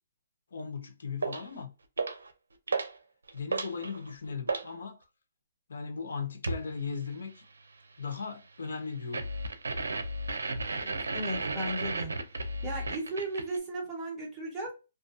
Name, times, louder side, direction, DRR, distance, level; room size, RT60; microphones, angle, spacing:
voice 1, 0.5-1.7 3.3-5.0 5.7-7.4 8.0-9.3, left 5 dB, 75° left, 0.9 m, -37 dB
sound 1, 1.2-1.5 2.0-2.3 2.7-3.0 3.3-4.7 6.4-6.7 9.1-13.6, right 3 dB, 90° right, 0.5 m, -33 dB
voice 2, 10.7-12.1 12.6-14.7, right 1 dB, 5° right, 1.2 m, -36 dB
2.5 x 2.3 x 2.5 m
hypercardioid pair, 150°, 0 cm